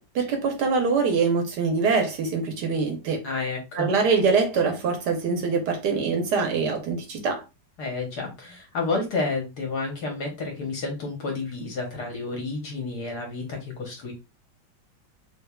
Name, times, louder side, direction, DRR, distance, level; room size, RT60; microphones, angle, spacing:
voice 1, 0.1-3.2 3.8-7.4, right 5 dB, 65° right, 1.1 m, -24 dB
voice 2, 3.2-3.9 7.8-14.1, left 3 dB, 60° left, 1.2 m, -30 dB
3.4 x 3.2 x 2.2 m
omnidirectional pair, 2.3 m